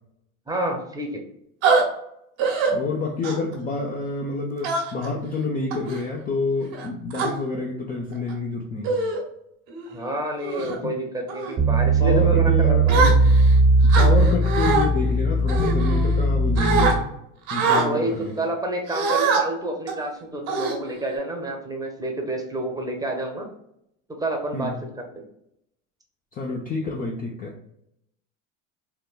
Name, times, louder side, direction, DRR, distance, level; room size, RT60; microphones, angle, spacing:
voice 1, 0.5-1.2 9.9-13.0 17.6-23.5 24.2-24.7 25.1-25.2, right 1 dB, 10° right, 2 dB, 0.7 m, -29 dB
sound 1, 1.6-1.8 2.4-2.7 3.2-3.5 4.6-5.1 5.7-6.0 6.7-7.3 8.1-8.3 8.8-9.2 9.7-9.9 10.4-10.8 11.3-11.5 12.9-13.5 13.9-14.8 15.5-16.3 16.6-16.9 17.5-17.9 18.9-19.4 19.9-20.0 20.5-21.1, right 4 dB, 70° right, 1.1 m, -23 dB
voice 2, 2.7-9.0 10.7-11.0 12.0-13.2 14.0-17.1 17.5-18.4 24.5-24.8 26.3-27.6, left 3 dB, 20° left, -1 dB, 0.4 m, -28 dB
sound 2, 11.6-16.9, right 2 dB, 45° right, 0.6 m, -18 dB
3.6 x 2.1 x 2.3 m, 0.76 s
hypercardioid pair, 90°, 41 cm